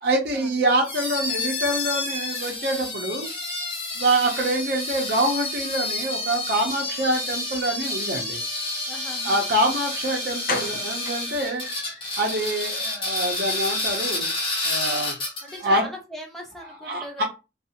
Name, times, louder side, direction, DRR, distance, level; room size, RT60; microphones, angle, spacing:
voice 1, 0.0-3.3 4.0-8.4 9.2-11.6 12.2-14.3 14.6-15.2 15.6-15.8 16.8-17.2, right 1 dB, 60° right, -1 dB, 0.6 m, -25 dB
sound 1, 0.8-15.7, left 2 dB, 30° left, 1.0 m, -29 dB
voice 2, 8.9-9.4 15.4-17.2, equal, ahead, 0 dB, 0.6 m, -39 dB
sound 2, 9.8-9.9 10.5-12.2 12.6-12.7 13.1-13.2 13.5-13.6, left 4 dB, 50° left, 0.5 m, -34 dB
2.5 x 2.3 x 2.8 m, 0.28 s
head